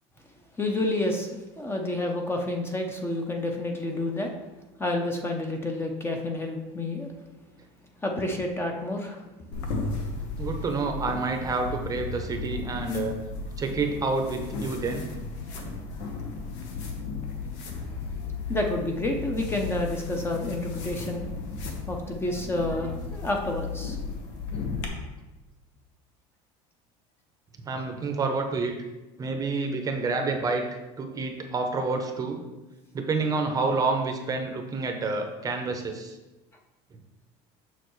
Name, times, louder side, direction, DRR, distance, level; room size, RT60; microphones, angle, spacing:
voice 1, 0.6-4.3 4.8-7.1 8.0-9.2 18.5-21.3 21.9-24.0, left 1 dB, 15° left, 2 dB, 0.6 m, -29 dB
sound 1, 9.5-24.9, left 4 dB, 85° left, 1.2 m, -35 dB
voice 2, 10.4-13.1 13.6-15.1 27.7-28.7 29.2-32.4 32.9-36.2, right 3 dB, 25° right, 4 dB, 0.7 m, -28 dB
6.7 x 6.1 x 3.1 m, 1.1 s
cardioid pair, 140°, 15 cm